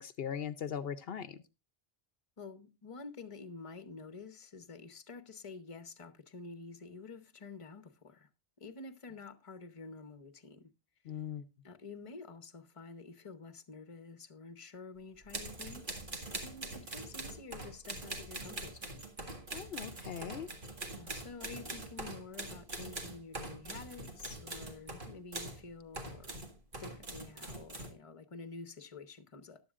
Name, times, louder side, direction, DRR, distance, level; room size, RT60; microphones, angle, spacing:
voice 1, 0.0-1.4 11.1-11.4 19.5-20.5, left 8 dB, 70° left, 0.9 m, -39 dB
voice 2, 2.4-8.3 8.6-10.7 11.6-16.1 16.4-19.1 20.9-26.3 26.8-29.6, left 4 dB, 35° left, 0.9 m, -49 dB
sound 1, 15.2-25.6 25.9-27.9, right 2 dB, 55° right, 2.1 m, -43 dB
14.5 x 11.0 x 2.4 m
omnidirectional pair, 1.0 m